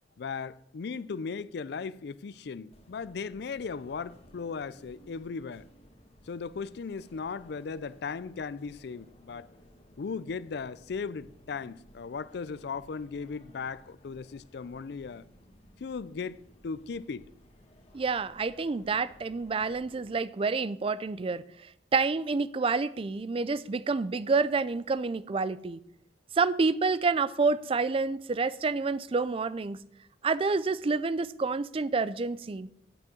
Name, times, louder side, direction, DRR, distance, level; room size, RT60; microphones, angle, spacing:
voice 1, 0.2-5.6 6.3-9.5 10.0-15.3 15.8-17.2, left 5 dB, 60° left, 0.4 m, -37 dB
sound 1, 2.7-20.2, equal, 35° left, 1.6 m, -58 dB
voice 2, 17.9-25.8 26.3-29.8 30.2-32.7, right 4 dB, 30° right, 0.4 m, -28 dB
9.2 x 6.1 x 7.1 m
head